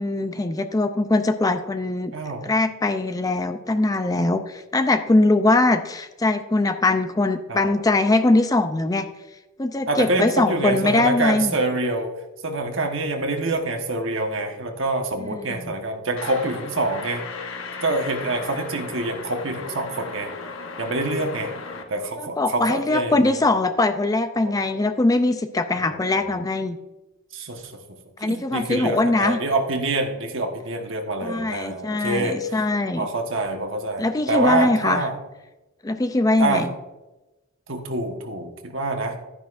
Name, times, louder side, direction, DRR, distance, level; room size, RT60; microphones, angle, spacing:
voice 1, 0.0-2.1 2.4-9.1 9.6-11.5 15.3-15.7 22.2-26.8 28.2-29.4 31.2-33.1 34.0-35.0 35.8-36.7, left 2 dB, 15° left, 9 dB, 0.4 m, -21 dB
voice 2, 2.1-2.4 7.5-7.7 9.9-12.1 12.4-17.2 17.8-20.3 20.8-21.5 21.9-23.3 24.4-24.9 25.8-26.3 27.3-27.7 28.2-32.4 33.0-35.2 36.4-36.6 37.7-39.2, right 2 dB, 60° right, 3 dB, 1.3 m, -26 dB
sound 1, 16.2-21.8, left 4 dB, 65° left, 1.0 m, -36 dB
11.5 x 10.0 x 2.5 m, 1.0 s
head